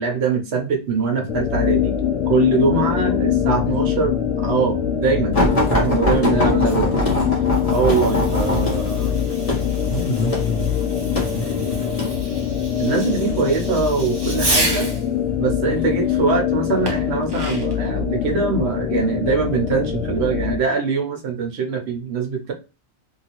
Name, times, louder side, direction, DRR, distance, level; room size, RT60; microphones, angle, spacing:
voice 1, 0.0-1.9 2.3-5.4 5.7-7.0 7.7-9.2 12.8-14.9 15.4-22.5, right 5 dB, 65° right, 3 dB, 0.9 m, -22 dB
sound 1, 1.3-20.6, left 9 dB, 90° left, 0.9 m, -23 dB
sound 2, 5.3-12.2 12.9-13.3 14.3-14.9 15.7-15.9 16.2-16.3, left 1 dB, 30° left, 1.0 m, -22 dB
voice 2, 6.7-7.2 9.7-10.8 11.2-12.1, left 2 dB, 75° left, 3 dB, 1.2 m, -28 dB
Fireworks, 7.4-15.1 16.9-17.9, right 1 dB, 25° right, 0.7 m, -30 dB
3.0 x 2.7 x 2.9 m, 0.30 s
omnidirectional pair, 1.2 m